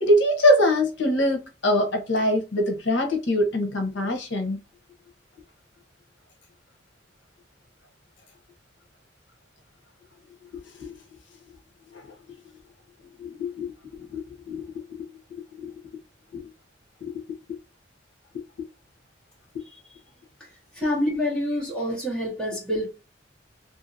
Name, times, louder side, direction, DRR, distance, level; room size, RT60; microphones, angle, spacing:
voice 1, 0.0-4.6 10.8-10.9 11.9-12.1 13.2-13.7 14.1-14.2 14.5-14.8 15.6-15.7 16.3-16.4 17.0-17.2 17.5-17.6 18.3-18.7 19.5-19.6, left 1 dB, 75° left, 0.9 m, -23 dB
voice 2, 20.7-22.9, left 1 dB, 5° left, 1.3 m, -27 dB
2.8 x 2.7 x 2.5 m
head